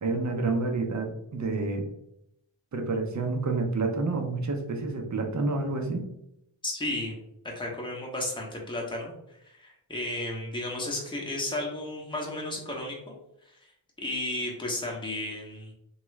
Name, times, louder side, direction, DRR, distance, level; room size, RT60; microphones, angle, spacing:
voice 1, 0.0-1.9 2.7-6.1, right 3 dB, 40° right, 3 dB, 0.7 m, -29 dB
voice 2, 6.6-7.2 7.5-9.1 9.4-13.2 13.5-13.6 14.0-15.7, left 1 dB, 10° left, -1 dB, 0.9 m, -33 dB
3.0 x 2.3 x 3.1 m, 0.79 s
cardioid pair, 45°, 47 cm